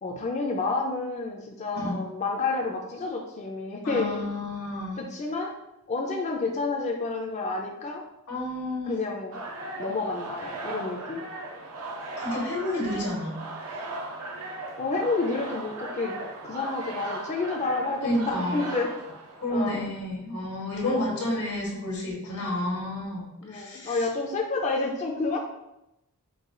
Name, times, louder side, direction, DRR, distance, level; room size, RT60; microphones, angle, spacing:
voice 1, 0.0-4.2 5.0-5.5 5.9-8.0 8.9-9.4 9.8-11.2 14.8-16.1 16.4-18.9 19.5-19.8 20.7-21.2 23.4-25.4, left 3 dB, 30° left, 0 dB, 0.4 m, -29 dB
voice 2, 3.8-5.0 8.3-8.9 12.2-13.4 18.0-18.7 19.4-24.0, left 1 dB, 90° left, -2 dB, 1.5 m, -30 dB
sound 1, 9.3-19.8, right 2 dB, 80° right, 0.7 m, -37 dB
4.7 x 2.3 x 3.7 m, 0.87 s
head